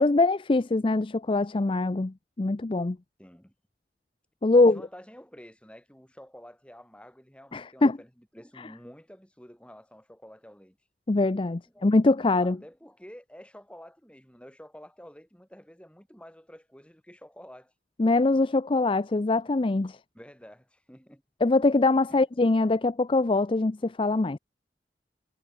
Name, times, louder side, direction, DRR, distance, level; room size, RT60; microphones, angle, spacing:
voice 1, 0.0-3.0 4.4-4.8 7.5-8.0 11.1-12.6 18.0-20.0 21.4-24.4, left 2 dB, 30° left, 0.5 m, -23 dB
voice 2, 3.2-3.5 4.5-10.8 11.7-11.9 12.4-17.7 20.1-21.2 22.1-22.4, equal, 5° left, 6.8 m, -50 dB
head